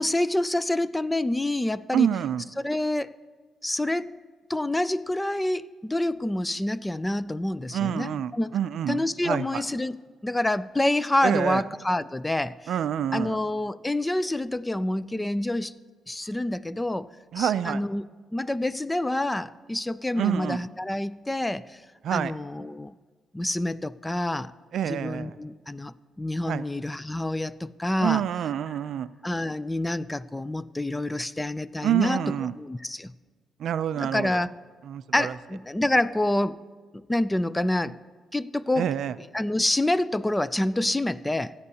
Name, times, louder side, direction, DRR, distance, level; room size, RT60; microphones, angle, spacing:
voice 1, 0.0-2.1 2.6-3.1 3.6-4.1 4.5-8.5 8.9-10.0 10.2-12.7 13.1-15.7 16.1-17.1 17.4-18.0 18.3-21.8 22.1-22.9 23.3-24.5 24.9-28.2 29.2-32.2 32.5-33.1 34.0-34.5 35.1-36.6 36.9-38.0 38.3-38.9 39.3-41.5, left 1 dB, 10° left, 17 dB, 0.3 m, -27 dB
voice 2, 1.9-2.4 7.7-9.6 11.2-11.6 12.7-13.4 17.3-17.8 20.2-20.6 22.0-22.3 24.7-25.3 26.5-26.6 28.0-29.1 31.8-32.5 33.6-34.4 34.8-35.3 38.8-39.1, right 10 dB, 70° right, 14 dB, 0.4 m, -27 dB
27.5 x 9.6 x 2.8 m, 1.5 s
cardioid pair, 90°, 0 cm